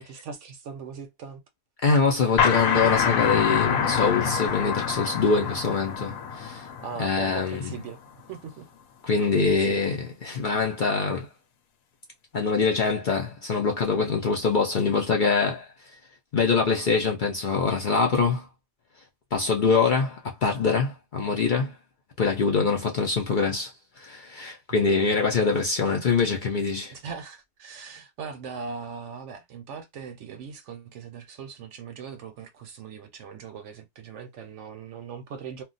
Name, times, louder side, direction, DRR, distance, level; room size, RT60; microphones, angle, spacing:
voice 1, 0.0-1.4 6.8-8.0 8.3-8.7 9.2-10.0 24.7-24.9 26.9-35.6, right 6 dB, 65° right, 0.8 m, -40 dB
voice 2, 1.8-6.7 7.0-7.7 9.0-11.3 12.3-16.0 16.3-18.5 19.3-21.8 22.2-27.0, left 4 dB, 60° left, 0.5 m, -24 dB
sound 1, 2.4-7.8, left 7 dB, 80° left, 1.0 m, -26 dB
2.3 x 2.2 x 3.8 m
omnidirectional pair, 1.4 m